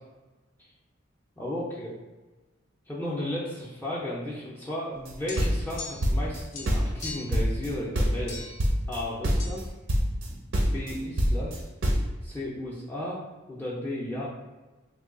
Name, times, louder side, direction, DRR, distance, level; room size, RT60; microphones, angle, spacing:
voice 1, 1.4-1.9 2.9-8.5 8.9-9.6 10.3-10.4 10.7-11.7 12.2-14.3, left 1 dB, 10° left, -6 dB, 0.5 m, -34 dB
sound 1, 5.1-6.4 6.7-7.7 7.9-8.3 8.6-9.0 9.2-9.6 9.9-10.3 10.5-12.1, equal, 75° right, 0.6 m, -25 dB
sound 2, 5.3-6.2 6.5-7.4 8.3-8.7 9.4-9.6, left 4 dB, 65° left, 0.5 m, -40 dB
3.0 x 2.2 x 3.6 m, 1.2 s
head